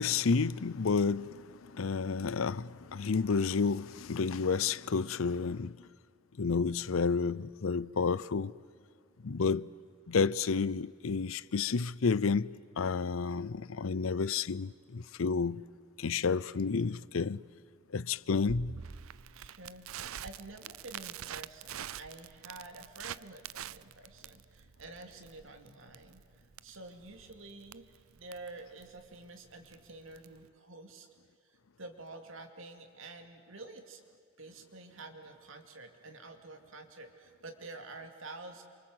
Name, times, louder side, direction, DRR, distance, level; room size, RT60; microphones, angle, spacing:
voice 1, 0.0-5.9 6.4-8.5 9.2-9.7 10.1-15.7 16.0-17.4 17.9-18.8, left 5 dB, 80° left, 0.6 m, -30 dB
Crackle, 18.5-30.5, right 9 dB, 90° right, 0.6 m, -46 dB
voice 2, 19.3-31.1 31.4-34.0 34.4-38.6, right 2 dB, 70° right, 2.5 m, -49 dB
28.5 x 24.5 x 7.9 m
head